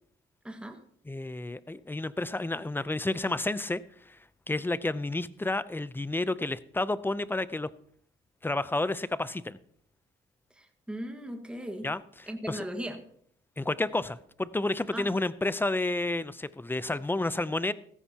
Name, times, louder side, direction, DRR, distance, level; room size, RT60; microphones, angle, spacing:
voice 1, 0.4-0.8 10.5-11.9 12.3-13.0 14.9-15.1, equal, 5° right, 4 dB, 1.7 m, -38 dB
voice 2, 1.1-4.2 4.5-7.7 8.4-9.6 11.8-12.7 13.6-17.7, left 2 dB, 10° left, 16 dB, 0.6 m, -31 dB
16.0 x 14.0 x 2.9 m, 0.66 s
cardioid pair, 90°, 20 cm